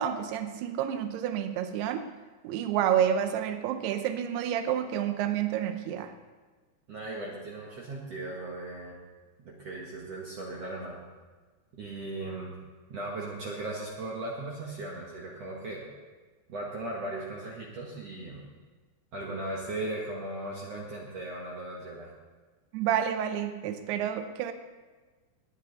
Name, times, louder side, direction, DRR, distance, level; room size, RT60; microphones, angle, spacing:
voice 1, 0.0-2.1 2.4-6.1 22.7-24.5, right 9 dB, 75° right, 8 dB, 2.7 m, -29 dB
voice 2, 6.9-9.0 9.4-11.0 11.7-12.6 12.9-15.9 16.5-18.5 19.1-22.1, right 2 dB, 60° right, -3 dB, 1.8 m, -37 dB
19.5 x 9.3 x 4.1 m, 1.3 s
omnidirectional pair, 4.9 m